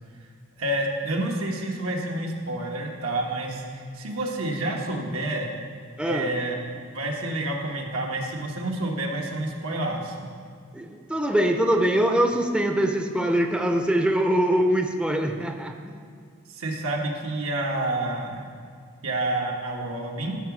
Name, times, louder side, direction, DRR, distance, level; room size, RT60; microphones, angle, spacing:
voice 1, 0.6-5.5 6.0-10.3 16.5-18.5 19.0-20.4, right 1 dB, 85° right, 0 dB, 1.4 m, -29 dB
voice 2, 6.0-6.3 10.7-16.0, right 1 dB, 5° right, 4 dB, 0.5 m, -23 dB
12.5 x 4.9 x 6.0 m, 2.2 s
head